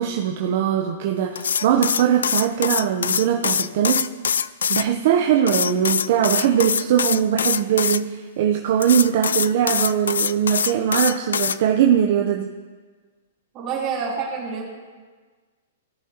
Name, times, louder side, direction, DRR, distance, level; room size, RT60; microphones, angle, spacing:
voice 1, 0.0-4.0 4.7-12.5, right 9 dB, 55° right, 2 dB, 0.7 m, -21 dB
sound 1, 1.3-4.9 5.5-8.0 8.8-11.6, left 7 dB, 85° left, 0.3 m, -23 dB
voice 2, 13.5-14.7, right 5 dB, 30° right, -5 dB, 3.5 m, -27 dB
17.0 x 7.5 x 2.9 m, 1.4 s
hypercardioid pair, 135°, 0 cm